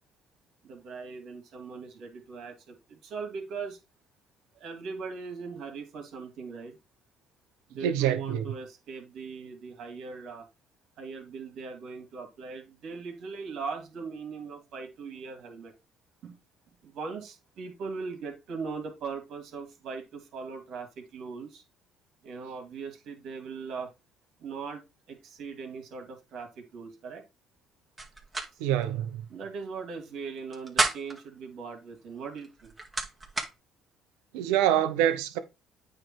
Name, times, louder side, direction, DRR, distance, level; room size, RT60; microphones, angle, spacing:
voice 1, 0.6-3.8 4.5-6.8 7.7-10.5 11.0-15.7 16.2-16.4 16.8-21.6 22.2-23.9 24.4-24.8 25.1-27.2 29.3-32.7, right 5 dB, 65° right, 2.8 m, -40 dB
voice 2, 7.8-8.5 28.6-29.2 34.3-35.4, right 11 dB, 90° right, 0.9 m, -26 dB
sound 1, 28.0-28.5 28.8-28.9 30.4-31.2 32.4-33.5, right 2 dB, 25° right, 2.2 m, -30 dB
8.9 x 3.5 x 4.6 m
supercardioid pair, 80°, 0 cm